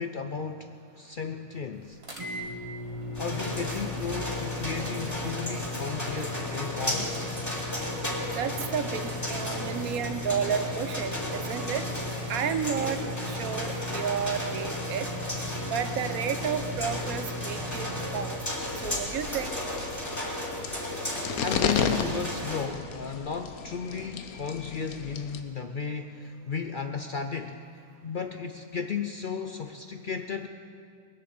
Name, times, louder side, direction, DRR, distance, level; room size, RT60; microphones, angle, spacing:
voice 1, 0.0-2.0 2.4-2.5 3.2-7.1 21.4-27.6 28.0-30.5, left 6 dB, 55° left, 6 dB, 0.5 m, -34 dB
sound 1, 2.0-18.2, left 2 dB, 20° right, 1.7 m, -37 dB
sound 2, 3.1-22.7, equal, 10° left, 2.5 m, -35 dB
voice 2, 8.4-11.8 12.3-13.0 13.3-15.1 15.7-18.4 18.8-19.6, right 8 dB, 85° right, 10 dB, 1.2 m, -31 dB
sound 3, 18.6-25.4, left 6 dB, 85° left, 1.3 m, -33 dB
20.5 x 7.6 x 7.7 m, 2.2 s
omnidirectional pair, 1.5 m